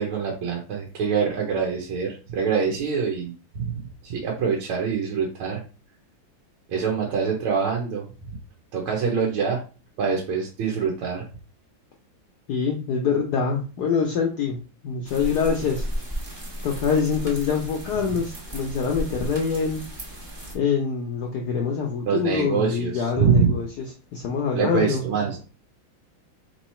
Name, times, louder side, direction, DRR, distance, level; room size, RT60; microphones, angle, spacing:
voice 1, 0.0-3.6 4.0-5.6 6.7-8.0 8.7-9.6 10.0-11.2 22.1-23.6 24.5-25.4, right 6 dB, 85° right, -1 dB, 1.7 m, -24 dB
voice 2, 12.5-14.6 14.8-15.8 16.6-19.8 20.5-25.0, left 6 dB, 65° left, 1 dB, 1.1 m, -25 dB
sound 1, 15.0-20.5, equal, 35° right, 0.4 m, -34 dB
3.8 x 3.0 x 4.2 m, 0.35 s
omnidirectional pair, 2.3 m